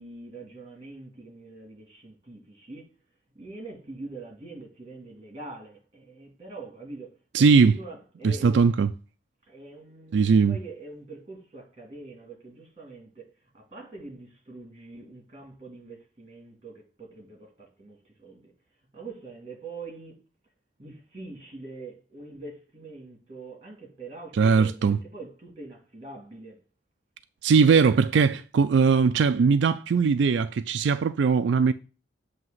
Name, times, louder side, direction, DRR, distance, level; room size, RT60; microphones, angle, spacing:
voice 1, 0.0-2.9 3.3-8.7 9.5-18.5 18.9-20.2 20.8-26.6, right 3 dB, 30° right, 2.2 m, -44 dB
voice 2, 7.3-7.8 8.2-8.9 10.1-10.6 24.4-25.0 27.4-31.7, right 5 dB, 70° right, 0.3 m, -20 dB
7.6 x 2.9 x 5.6 m
head